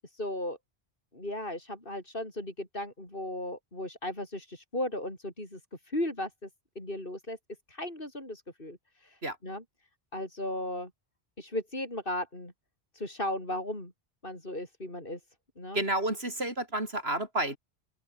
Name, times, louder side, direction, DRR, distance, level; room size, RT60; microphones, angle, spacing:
voice 1, 0.1-0.6 1.1-5.6 5.9-6.5 6.8-7.4 7.7-9.6 10.1-10.9 11.4-12.5 12.9-13.9 14.2-15.2 15.6-15.8, left 1 dB, 55° left, 7.1 m, -36 dB
voice 2, 15.7-17.6, right 1 dB, 70° right, 6.3 m, -30 dB
open air
omnidirectional pair, 1.1 m